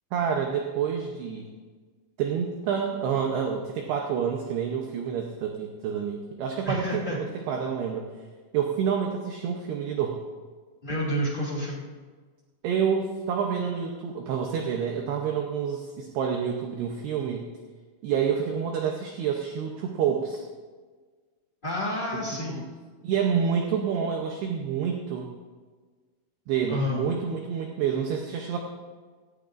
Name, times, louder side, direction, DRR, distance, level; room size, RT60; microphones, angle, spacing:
voice 1, 0.1-1.5 2.2-8.0 8.5-10.2 12.6-17.5 18.0-20.4 22.1-22.2 22.5-22.6 23.0-25.3 26.5-28.6, right 7 dB, 75° right, 2 dB, 2.5 m, -28 dB
voice 2, 6.6-7.2 10.8-11.8 21.6-22.6 26.7-27.0, left 1 dB, 65° left, -5 dB, 0.4 m, -29 dB
17.0 x 14.5 x 2.6 m, 1.4 s
omnidirectional pair, 5.7 m